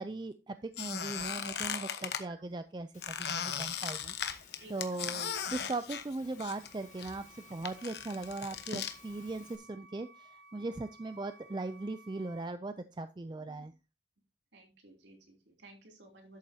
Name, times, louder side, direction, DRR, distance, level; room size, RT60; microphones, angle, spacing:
voice 1, 0.0-4.2 4.7-13.7, right 2 dB, 25° right, 11 dB, 0.4 m, -39 dB
Squeak, 0.7-2.2 3.0-6.7 7.0-8.9, left 7 dB, 65° left, 1.0 m, -37 dB
voice 2, 2.0-2.3 4.6-5.1 13.4-13.7 14.5-16.4, right 2 dB, 75° right, 1 dB, 3.2 m, -56 dB
Engine / Mechanisms, 2.9-9.6, left 6 dB, 40° left, 1.4 m, -59 dB
sound 1, 6.1-12.5, right 2 dB, 5° right, 2.3 m, -58 dB
11.5 x 8.1 x 2.8 m, 0.29 s
head